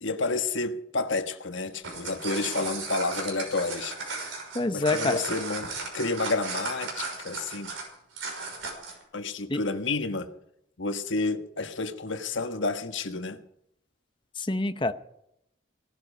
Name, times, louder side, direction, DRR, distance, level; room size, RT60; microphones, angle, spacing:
voice 1, 0.0-4.2 4.7-5.7 5.9-7.7 9.1-10.3 10.8-13.4, left 3 dB, 75° left, 1.4 m, -30 dB
sound 1, 1.7-9.0, right 3 dB, 85° right, 6.0 m, -35 dB
voice 2, 4.5-5.2 9.5-9.6 14.4-14.9, left 2 dB, 25° left, 0.8 m, -26 dB
18.5 x 12.5 x 5.4 m
head